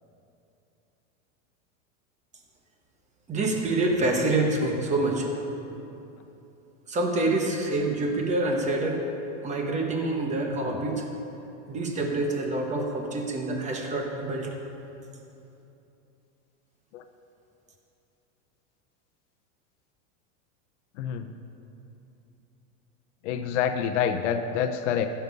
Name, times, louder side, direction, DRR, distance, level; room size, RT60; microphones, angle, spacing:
voice 1, 3.3-5.3 6.9-9.0 9.4-11.1 11.7-14.5, right 2 dB, 20° right, 2 dB, 1.2 m, -26 dB
voice 2, 21.0-21.3 23.2-25.1, left 8 dB, 60° left, 7 dB, 0.8 m, -27 dB
14.5 x 6.9 x 5.4 m, 2.9 s
supercardioid pair, 155°, 40 cm